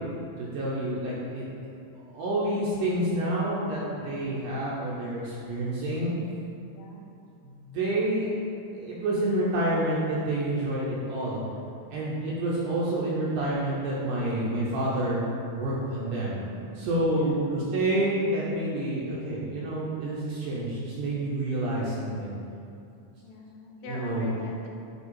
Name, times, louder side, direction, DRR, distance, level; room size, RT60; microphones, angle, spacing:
voice 1, 0.4-1.5 2.0-6.1 7.4-8.3 8.7-11.4 11.9-15.2 15.5-16.4 16.8-22.4 23.9-24.3, right 1 dB, 75° right, -6 dB, 2.1 m, -28 dB
voice 2, 17.1-17.7 23.2-24.7, left 2 dB, 75° left, -1 dB, 2.4 m, -44 dB
8.1 x 3.0 x 4.6 m, 2.5 s
omnidirectional pair, 4.1 m